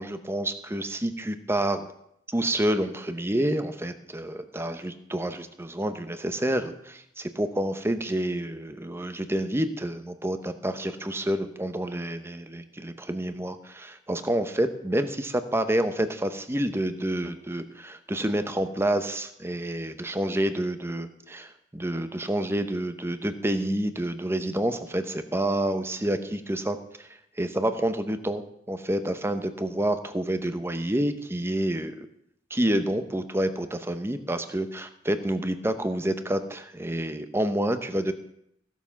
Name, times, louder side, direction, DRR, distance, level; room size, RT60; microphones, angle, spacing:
voice 1, 0.0-1.9 2.3-27.1 27.4-32.1 32.5-38.1, right 1 dB, 15° right, 9 dB, 0.9 m, -28 dB
15.5 x 7.2 x 5.8 m, 0.74 s
head